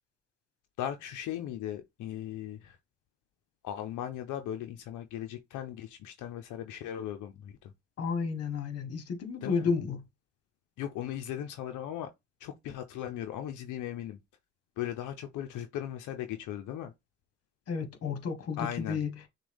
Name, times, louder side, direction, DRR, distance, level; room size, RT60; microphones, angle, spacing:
voice 1, 0.8-2.8 3.6-7.7 9.4-9.7 10.8-12.1 12.4-14.2 14.8-16.9 18.6-19.0, left 11 dB, 80° left, 0.6 m, -38 dB
voice 2, 8.0-10.0 17.7-18.6 18.9-19.1, left 5 dB, 55° left, 1.2 m, -31 dB
6.1 x 2.3 x 3.4 m
cardioid pair, 90°, 30 cm